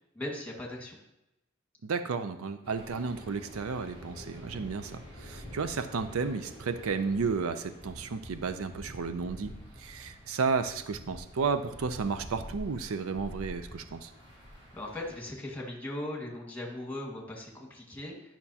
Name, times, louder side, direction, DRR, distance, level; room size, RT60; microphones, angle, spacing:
voice 1, 0.1-1.0 14.7-18.4, left 1 dB, 10° left, -1 dB, 1.7 m, -39 dB
voice 2, 1.8-14.1, right 5 dB, 85° right, 11 dB, 0.5 m, -33 dB
sound 1, 2.6-15.2, equal, 25° right, 2.5 m, -47 dB
10.5 x 5.8 x 2.8 m, 0.90 s
head